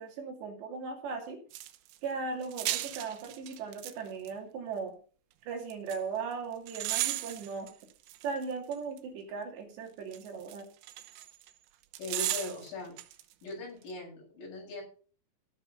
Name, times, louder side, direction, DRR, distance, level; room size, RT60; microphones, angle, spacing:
voice 1, 0.0-1.4 2.0-4.9 5.5-7.7 8.2-10.7, right 5 dB, 65° right, 2 dB, 4.5 m, -38 dB
sound 1, 1.5-2.0 2.4-3.9 4.3-4.4 5.7-6.0 6.7-9.0 10.1-11.5 11.9-13.2 13.5-13.6, right 15 dB, 80° right, 3.4 m, -35 dB
voice 2, 12.0-12.9 13.4-14.8, left 2 dB, 70° left, -3 dB, 10.0 m, -40 dB
16.0 x 6.7 x 5.5 m, 0.39 s
omnidirectional pair, 5.5 m